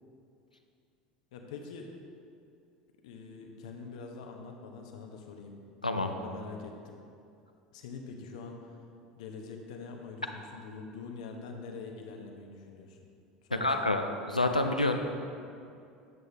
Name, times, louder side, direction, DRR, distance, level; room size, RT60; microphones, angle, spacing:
voice 1, 1.3-1.9 3.0-5.5 6.0-7.0 7.7-8.8 9.1-13.0 13.4-14.0, left 4 dB, 60° left, 2 dB, 1.0 m, -44 dB
voice 2, 13.5-15.2, left 2 dB, 90° left, 5 dB, 0.5 m, -28 dB
9.3 x 7.8 x 3.5 m, 2.5 s
figure-of-eight pair, 75°, 4 cm